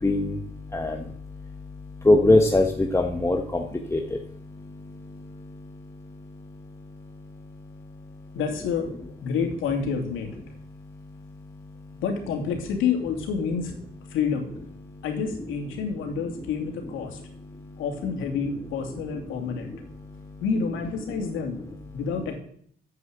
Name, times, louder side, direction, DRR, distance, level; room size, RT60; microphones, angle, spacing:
voice 1, 0.0-8.4 10.5-12.0 14.8-15.0 15.7-18.1 18.4-20.4 21.2-22.0, left 2 dB, 15° left, 2 dB, 1.3 m, -28 dB
voice 2, 8.3-8.9 9.2-10.3 12.0-13.7 14.1-14.5 15.0-17.2 17.8-19.7 20.4-21.6 21.9-22.4, left 6 dB, 85° left, 3 dB, 2.6 m, -28 dB
9.8 x 8.2 x 8.0 m, 0.63 s
cardioid pair, 90°, 20 cm